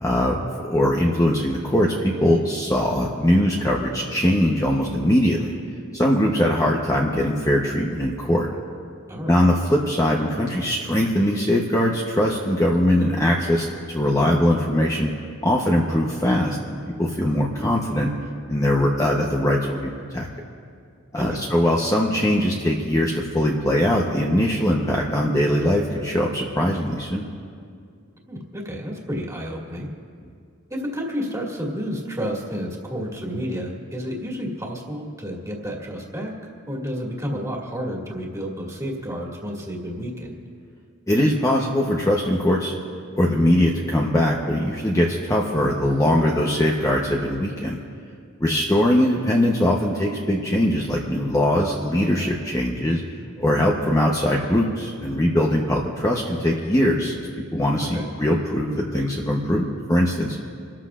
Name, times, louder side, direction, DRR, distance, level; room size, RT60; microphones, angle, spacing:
voice 1, 0.0-5.5 5.9-8.5 9.3-15.1 15.4-18.1 18.5-20.3 21.1-27.3 41.1-42.7 43.2-47.8 48.4-53.0 53.4-57.3 57.5-60.4, left 1 dB, 15° left, -1 dB, 0.9 m, -21 dB
voice 2, 9.1-9.5 21.2-21.4 28.3-29.9 30.7-36.3 36.7-40.3 55.7-55.8 57.8-58.1, equal, 15° right, -2 dB, 2.1 m, -30 dB
28.5 x 13.5 x 2.5 m, 2.3 s
head